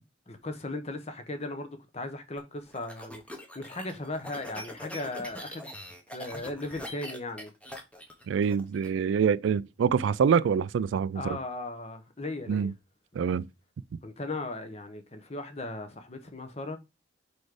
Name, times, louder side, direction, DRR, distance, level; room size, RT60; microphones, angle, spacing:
voice 1, 0.3-3.2 3.5-5.7 6.1-7.5 11.1-12.7 14.0-16.8, left 2 dB, 35° left, 0.9 m, -37 dB
sound 1, 2.4-8.9, equal, 5° left, 0.9 m, -43 dB
voice 2, 8.3-11.2 12.5-12.7 13.1-13.5, right 6 dB, 75° right, 0.3 m, -25 dB
4.7 x 4.2 x 4.8 m
head